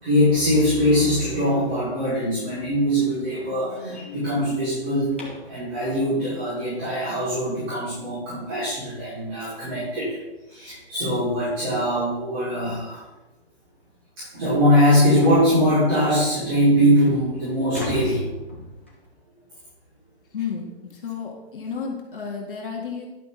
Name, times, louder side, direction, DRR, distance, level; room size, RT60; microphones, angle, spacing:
voice 1, 0.0-5.2 5.5-10.2 10.5-13.0 14.2-18.2, equal, 20° right, -13 dB, 3.7 m, -22 dB
sound 1, 2.5-5.6 8.4-8.5 9.0-9.2 9.5-9.6 10.1-10.2 11.3-11.5 11.9-12.0 12.7-12.8 13.1-13.2 13.7-13.8 15.2-15.5 16.3-16.4 16.8-19.1, left 1 dB, 10° left, 0.5 m, -37 dB
voice 2, 20.3-23.1, left 6 dB, 55° left, -2 dB, 2.1 m, -32 dB
11.0 x 6.7 x 4.0 m, 1.0 s
hypercardioid pair, 180°, 33 cm